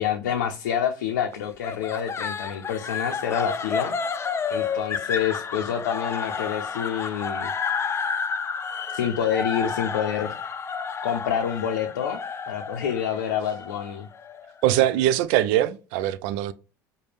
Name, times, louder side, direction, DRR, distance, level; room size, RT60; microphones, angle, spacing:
voice 1, 0.0-3.9 4.5-7.5 8.9-10.4 11.0-12.2 12.5-14.1, left 9 dB, 85° left, 0.5 m, -27 dB
sound 1, 1.6-14.8, left 5 dB, 25° left, 0.4 m, -31 dB
voice 2, 14.6-16.5, right 13 dB, 65° right, 0.4 m, -22 dB
5.0 x 2.2 x 3.2 m
hypercardioid pair, 75°, 10 cm